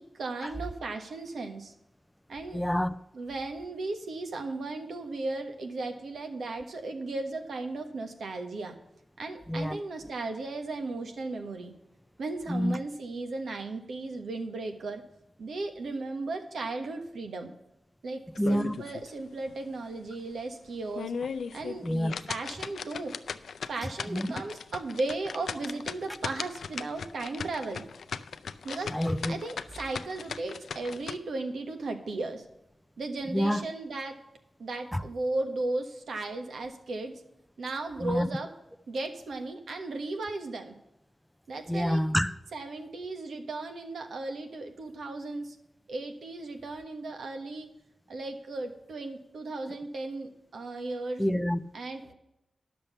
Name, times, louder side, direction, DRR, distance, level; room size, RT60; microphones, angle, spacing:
voice 1, 0.0-1.7 2.3-2.6 3.1-8.7 9.2-11.7 12.2-15.0 15.4-17.5 18.0-18.2 18.5-21.1 21.5-21.9 22.3-23.1 23.7-27.8 28.6-29.0 29.3-32.4 33.0-34.2 34.6-37.1 37.6-38.5 38.9-40.7 41.5-42.0 42.5-45.6 45.9-47.7 48.1-51.2 51.7-52.1, right 2 dB, 85° right, 1.4 m, -36 dB
voice 2, 2.5-2.9 9.5-9.8 12.5-12.8 18.4-18.7 21.8-22.1 24.1-24.3 28.9-29.4 33.3-33.6 34.9-35.0 38.0-38.3 41.7-42.3 51.2-51.6, equal, 5° left, 0.5 m, -27 dB
sound 1, 18.4-19.1 19.5-19.6 20.1-20.2 20.8-31.2, left 6 dB, 90° left, 0.4 m, -38 dB
10.5 x 6.9 x 6.8 m
wide cardioid pair, 80°, 0 cm